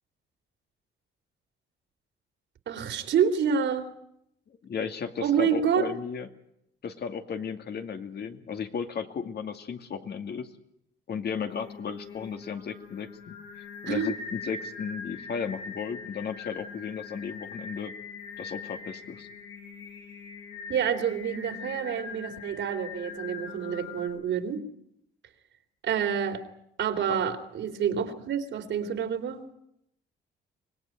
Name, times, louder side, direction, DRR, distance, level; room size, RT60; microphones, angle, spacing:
voice 1, 2.7-3.9 5.2-5.9 13.9-14.1 20.7-24.6 25.8-26.4 26.8-29.4, right 7 dB, 70° right, 6 dB, 3.3 m, -28 dB
voice 2, 4.6-6.3 6.8-10.5 11.1-18.0 18.4-19.3 27.1-27.2, left 6 dB, 55° left, 6 dB, 2.4 m, -35 dB
Singing, 11.5-24.1, left 5 dB, 90° left, 8.0 m, -42 dB
25.0 x 19.0 x 9.2 m, 0.79 s
cardioid pair, 90°, 20 cm